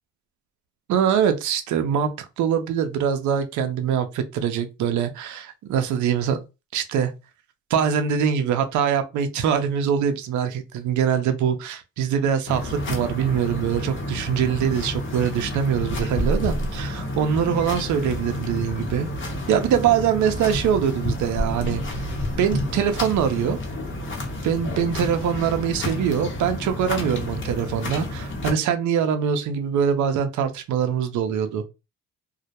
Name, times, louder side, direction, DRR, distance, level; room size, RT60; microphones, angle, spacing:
voice 1, 0.9-6.4 6.7-7.1 7.7-19.1 19.5-21.8 22.4-23.6 24.4-31.7, right 8 dB, 70° right, 0.5 m, -23 dB
sound 1, 12.5-28.5, left 1 dB, 40° left, 0.8 m, -29 dB
2.2 x 2.0 x 2.8 m
cardioid pair, 90°, 30 cm